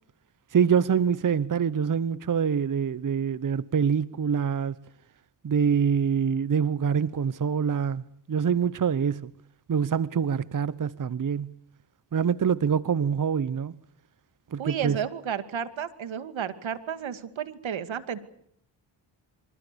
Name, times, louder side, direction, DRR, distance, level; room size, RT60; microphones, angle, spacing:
voice 1, 0.5-4.8 5.4-8.0 8.3-9.3 9.7-11.5 12.1-13.8 14.5-15.0, right 7 dB, 45° right, 1.0 m, -25 dB
voice 2, 14.6-18.2, right 8 dB, 75° right, 2.5 m, -32 dB
26.5 x 25.5 x 7.0 m
cardioid pair, 60°, 47 cm